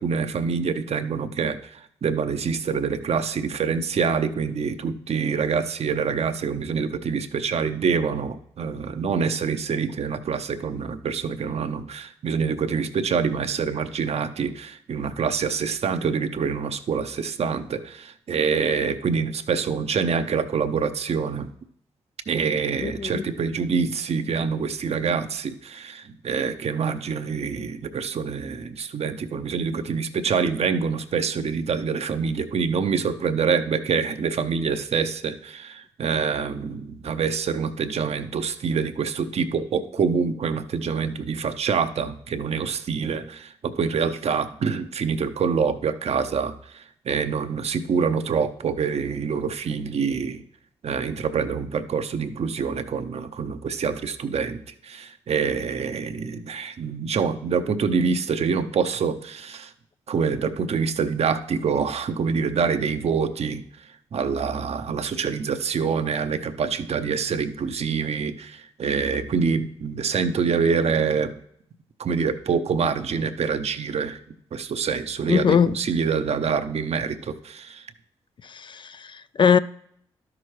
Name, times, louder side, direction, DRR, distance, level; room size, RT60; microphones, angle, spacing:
voice 1, 0.0-21.5 22.3-50.4 50.8-59.7 60.1-63.6 64.1-71.3 72.0-74.2 74.5-77.8, right 5 dB, 55° right, 0.7 m, -26 dB
voice 2, 22.8-23.3 75.3-75.8 78.4-79.6, left 7 dB, 40° left, 0.3 m, -21 dB
12.0 x 6.0 x 3.2 m
hypercardioid pair, 40°, 13 cm